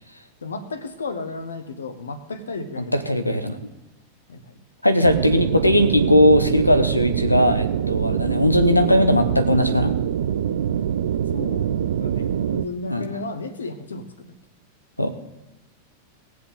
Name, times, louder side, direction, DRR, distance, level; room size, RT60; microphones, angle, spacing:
voice 1, 0.4-3.1 4.3-4.6 11.3-14.3, left 3 dB, 70° left, 11 dB, 1.2 m, -34 dB
voice 2, 2.8-3.6 4.8-9.9 12.8-13.1 15.0-15.1, left 1 dB, 85° left, 9 dB, 0.9 m, -19 dB
sound 1, 5.0-12.7, right 9 dB, 65° right, 0.5 m, -24 dB
18.5 x 7.7 x 3.8 m, 0.96 s
figure-of-eight pair, 90°, 0 cm